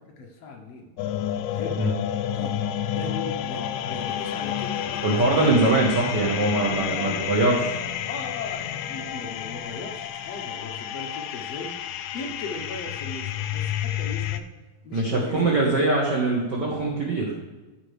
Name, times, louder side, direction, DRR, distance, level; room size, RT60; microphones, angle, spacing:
voice 1, 0.2-0.9 1.5-1.8 2.3-2.6 2.9-5.0 5.4-5.6 6.6-7.5 8.1-11.7 12.1-14.4 14.8-15.7, left 3 dB, 65° left, 1 dB, 1.8 m, -38 dB
sound 1, 1.0-14.4, left 10 dB, 85° left, 1.7 m, -30 dB
voice 2, 5.0-7.7 14.9-17.3, right 2 dB, 70° right, -3 dB, 1.0 m, -22 dB
13.0 x 5.5 x 3.3 m, 1.1 s
omnidirectional pair, 3.8 m